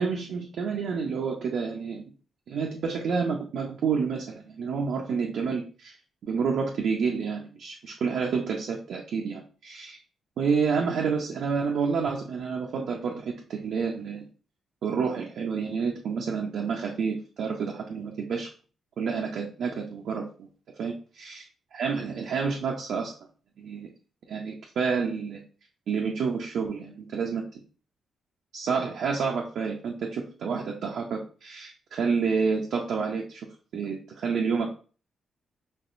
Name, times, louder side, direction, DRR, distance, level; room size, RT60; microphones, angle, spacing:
voice 1, 0.0-2.1 2.5-6.0 6.2-10.0 10.4-14.2 14.8-18.5 19.0-20.5 20.8-21.4 21.7-23.1 23.6-23.9 24.3-25.4 25.9-27.4 28.5-33.4 33.7-34.7, right 5 dB, 70° right, -1 dB, 0.5 m, -29 dB
4.3 x 3.0 x 2.5 m, 0.38 s
hypercardioid pair, 45°, 0 cm